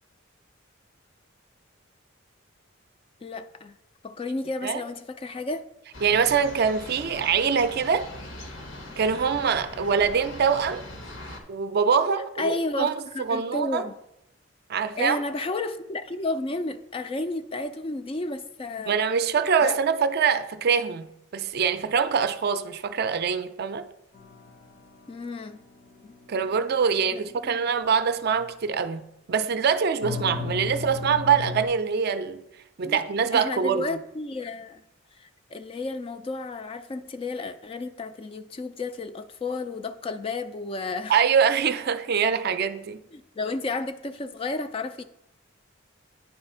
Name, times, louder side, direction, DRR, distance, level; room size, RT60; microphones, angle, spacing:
voice 1, 3.2-3.7 4.0-5.6 12.4-13.9 15.0-19.0 19.6-19.8 25.1-25.6 26.0-26.1 27.1-27.6 32.8-33.0 33.3-34.8 35.2-41.1 43.1-45.0, left 2 dB, 25° left, 0.3 m, -32 dB
sound 1, 5.9-11.4, left 1 dB, 65° left, 1.1 m, -41 dB
voice 2, 6.0-8.1 9.0-10.8 11.5-13.8 14.7-15.2 18.9-21.1 21.3-23.9 26.3-29.0 29.3-32.4 32.8-33.8 41.1-43.0, right 6 dB, 50° right, 0.4 m, -24 dB
sound 2, 24.1-28.5 30.0-31.7, left 4 dB, 45° left, 0.8 m, -38 dB
9.5 x 3.3 x 5.5 m
head